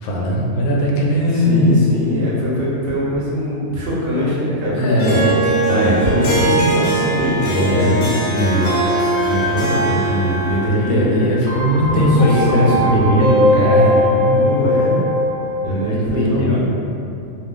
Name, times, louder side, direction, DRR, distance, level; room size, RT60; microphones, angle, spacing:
voice 1, 0.0-1.8 4.7-5.2 7.4-8.1 10.6-14.6 15.6-16.6, equal, 80° left, -2 dB, 1.0 m, -18 dB
voice 2, 1.3-5.2 5.7-8.7 9.2-11.2 11.9-13.2 14.3-15.0 15.6-16.6, equal, 55° right, -7 dB, 0.7 m, -21 dB
Harp, 5.0-10.8, right 2 dB, 55° left, 0.7 m, -21 dB
sound 1, 8.5-15.6, left 1 dB, 90° right, 1.1 m, -21 dB
2.4 x 2.4 x 3.7 m, 2.7 s
omnidirectional pair, 1.5 m